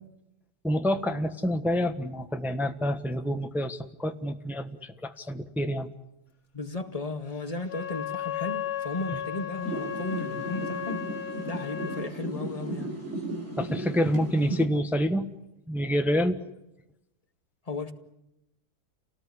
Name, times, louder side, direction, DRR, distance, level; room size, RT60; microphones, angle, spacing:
voice 1, 0.6-5.9 13.6-15.3 15.7-16.4, equal, ahead, 1.3 m, -27 dB
voice 2, 6.5-11.1 11.4-12.9 17.7-17.9, left 3 dB, 25° left, 2.2 m, -35 dB
Wind instrument woodwind instrument, 7.6-12.1, left 11 dB, 60° left, 2.3 m, -35 dB
sound 1, 9.6-14.6, right 2 dB, 45° right, 4.9 m, -35 dB
29.5 x 19.0 x 10.0 m
omnidirectional pair, 1.7 m